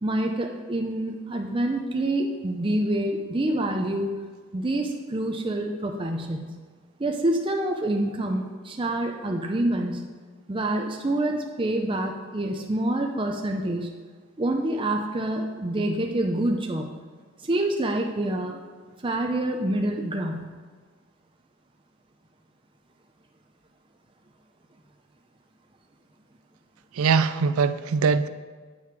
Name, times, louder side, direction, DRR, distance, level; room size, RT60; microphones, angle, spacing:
voice 1, 0.0-4.1 4.5-6.5 7.0-10.0 10.5-13.9 14.4-16.9 17.4-18.6 19.0-20.6, right 1 dB, 25° right, 2 dB, 0.5 m, -27 dB
voice 2, 26.9-28.3, right 5 dB, 85° right, 13 dB, 0.4 m, -22 dB
9.3 x 5.9 x 4.6 m, 1.5 s
head